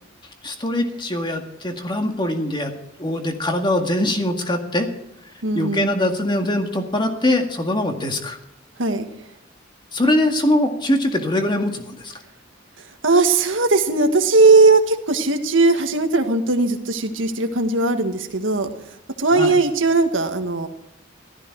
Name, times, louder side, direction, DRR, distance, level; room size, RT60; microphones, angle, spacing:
voice 1, 0.4-2.7 3.0-4.9 5.5-8.4 9.9-12.1 19.3-19.5, left 1 dB, 25° left, 4 dB, 1.9 m, -22 dB
voice 2, 5.4-5.9 8.8-9.1 13.0-18.7 19.2-20.7, right 3 dB, 75° right, 6 dB, 1.7 m, -18 dB
15.0 x 13.5 x 4.7 m, 0.80 s
head